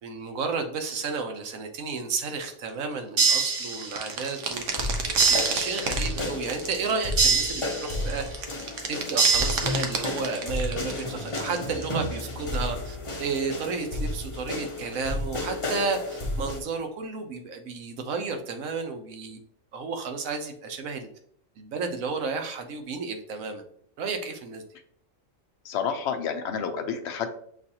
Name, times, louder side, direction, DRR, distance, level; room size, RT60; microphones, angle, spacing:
voice 1, 0.0-4.8 5.3-8.4 8.9-19.4 19.7-21.1 21.6-23.6 24.0-24.6, right 4 dB, 90° right, 5 dB, 1.2 m, -32 dB
sound 1, 2.4-2.5 2.7-2.8 3.3-7.5 7.9-11.9, right 5 dB, 70° right, 1.0 m, -33 dB
sound 2, 3.2-4.2 5.2-6.2 7.2-8.2 9.2-10.2, right 4 dB, 45° right, 1.3 m, -25 dB
sound 3, 4.5-16.6, left 1 dB, 30° left, 0.8 m, -32 dB
voice 2, 25.6-27.3, left 7 dB, 65° left, 6 dB, 0.8 m, -29 dB
6.8 x 2.5 x 2.8 m, 0.65 s
omnidirectional pair, 1.4 m